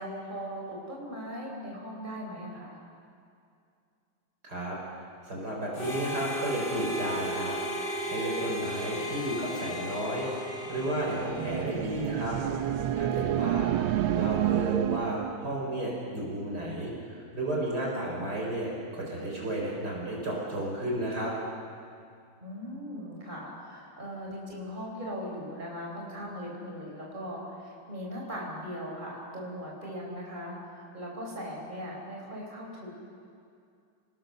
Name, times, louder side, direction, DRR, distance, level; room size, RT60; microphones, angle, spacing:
voice 1, 0.0-2.8 13.2-13.4 22.4-32.9, equal, 20° right, -2 dB, 4.9 m, -39 dB
voice 2, 4.4-7.6 8.0-12.4 12.9-13.7 14.2-21.3, right 1 dB, 50° right, -3 dB, 4.9 m, -33 dB
Harmonica, 5.7-12.1, left 1 dB, 25° left, 2.0 m, -35 dB
sound 1, 10.8-15.4, right 11 dB, 70° right, 1.5 m, -29 dB
29.0 x 19.5 x 6.7 m, 2.4 s
omnidirectional pair, 2.3 m